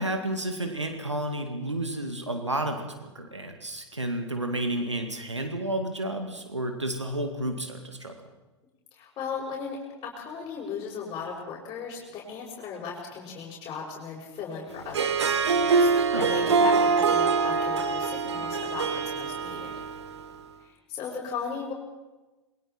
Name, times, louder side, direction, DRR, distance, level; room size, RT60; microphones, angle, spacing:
voice 1, 0.0-8.2 16.1-16.3, right 1 dB, 90° right, 5 dB, 2.1 m, -31 dB
voice 2, 8.9-9.8 10.0-19.7 20.6-21.7, left 5 dB, 30° left, -5 dB, 5.6 m, -36 dB
Harp, 14.8-20.3, right 4 dB, 70° right, 1.7 m, -24 dB
27.5 x 21.5 x 4.4 m, 1.1 s
figure-of-eight pair, 90°, 15 cm